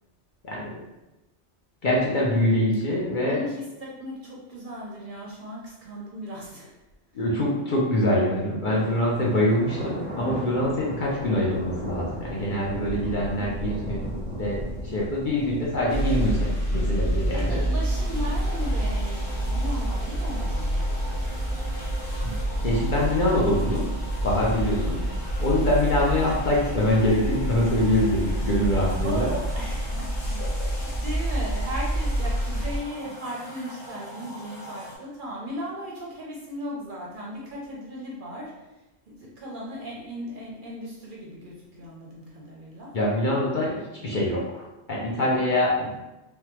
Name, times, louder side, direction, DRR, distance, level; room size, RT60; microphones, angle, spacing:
voice 1, 0.4-0.8 1.8-3.4 7.1-14.0 14.4-17.6 22.2-22.4 22.6-23.9 24.2-25.0 25.4-29.3 42.9-45.9, left 1 dB, 50° left, -5 dB, 0.7 m, -24 dB
voice 2, 3.2-6.7 13.4-13.9 17.3-20.9 24.7-24.9 25.6-25.9 29.0-30.4 30.6-38.5 39.1-43.0, equal, 55° right, -3 dB, 0.7 m, -37 dB
Thunder, 8.7-18.5, equal, 15° right, 0.5 m, -36 dB
sound 1, 15.9-32.8, right 1 dB, 70° left, 1.0 m, -27 dB
sound 2, 17.9-35.0, equal, 5° left, 1.1 m, -42 dB
3.4 x 2.2 x 2.9 m, 1.0 s
omnidirectional pair, 1.2 m